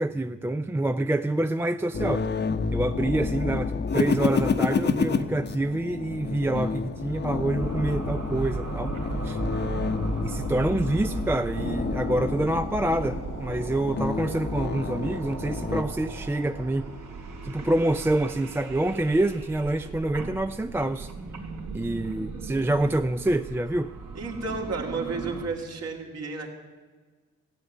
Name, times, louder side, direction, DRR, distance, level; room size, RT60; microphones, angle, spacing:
voice 1, 0.0-2.3 2.7-8.9 9.2-9.4 10.2-16.9 17.4-21.1 21.7-23.9, right 1 dB, 10° right, 9 dB, 0.4 m, -27 dB
sound 1, 1.9-15.8, left 4 dB, 35° left, 0.9 m, -29 dB
sound 2, 7.6-25.5, right 4 dB, 75° right, 2.8 m, -37 dB
voice 2, 24.1-26.5, right 4 dB, 60° right, 1 dB, 2.6 m, -32 dB
14.5 x 8.9 x 8.4 m, 1.4 s
cardioid pair, 90°, 30 cm